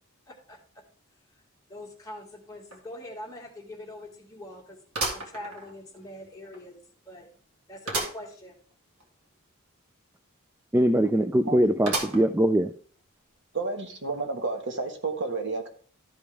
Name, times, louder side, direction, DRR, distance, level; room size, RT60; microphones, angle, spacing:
voice 1, 0.3-0.6 1.7-4.8 5.1-6.8 7.1-7.3 7.7-8.5, left 1 dB, 15° left, -1 dB, 1.8 m, -43 dB
sound 1, 2.7-2.8 3.2-3.3 4.9-6.0 6.5-6.6 7.9-8.3 8.7-8.8 9.0-9.1 11.9-12.5 13.1-13.2 14.1-14.2, right 2 dB, 85° right, 1.9 m, -32 dB
voice 2, 10.7-12.7, right 1 dB, 10° right, 9 dB, 0.3 m, -22 dB
voice 3, 13.5-15.7, right 3 dB, 55° right, 4 dB, 1.4 m, -31 dB
12.5 x 5.3 x 3.4 m, 0.43 s
head